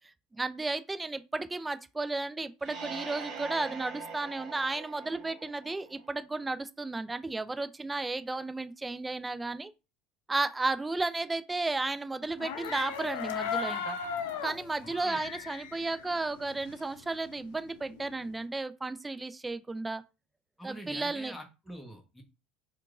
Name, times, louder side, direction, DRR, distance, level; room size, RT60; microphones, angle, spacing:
voice 1, 0.3-9.7 10.3-14.0 14.4-20.0 20.6-21.3, right 3 dB, 15° right, 0.4 m, -33 dB
sound 1, 2.6-6.2, right 5 dB, 50° right, 0.7 m, -43 dB
sound 2, 12.3-17.0 17.3-18.4, left 6 dB, 70° left, 0.5 m, -37 dB
voice 2, 20.6-22.2, equal, ahead, 0.9 m, -45 dB
4.5 x 2.3 x 2.4 m
figure-of-eight pair, 70°, 0 cm